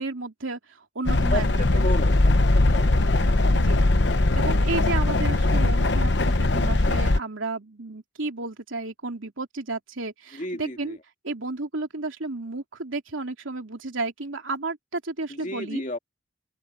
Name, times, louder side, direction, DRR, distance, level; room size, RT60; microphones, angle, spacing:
voice 1, 0.0-2.0 3.5-3.9 4.3-11.0 11.2-15.8, right 3 dB, 80° right, 2.9 m, -32 dB
sound 1, 1.1-7.2, left 2 dB, 60° left, 1.0 m, -20 dB
voice 2, 1.7-2.9 10.3-11.0 15.3-16.0, left 1 dB, 40° left, 2.4 m, -32 dB
open air
head